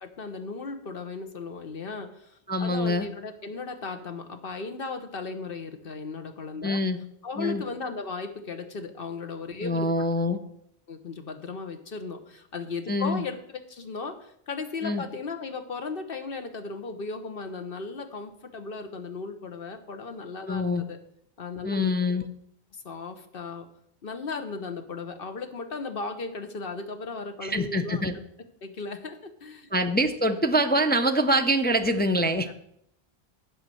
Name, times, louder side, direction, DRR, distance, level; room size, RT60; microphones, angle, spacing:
voice 1, 0.0-6.8 7.2-9.9 10.9-21.0 21.4-21.9 22.7-23.7 24.0-28.0 28.6-29.7 32.3-32.5, left 4 dB, 60° left, 7 dB, 1.2 m, -36 dB
voice 2, 2.5-3.1 6.6-7.0 7.4-7.6 9.6-10.4 12.9-13.2 14.8-15.0 20.5-20.8 21.6-22.2 27.4-28.2 29.7-32.5, equal, 15° left, 7 dB, 0.3 m, -25 dB
9.2 x 5.4 x 7.6 m, 0.73 s
omnidirectional pair, 1.1 m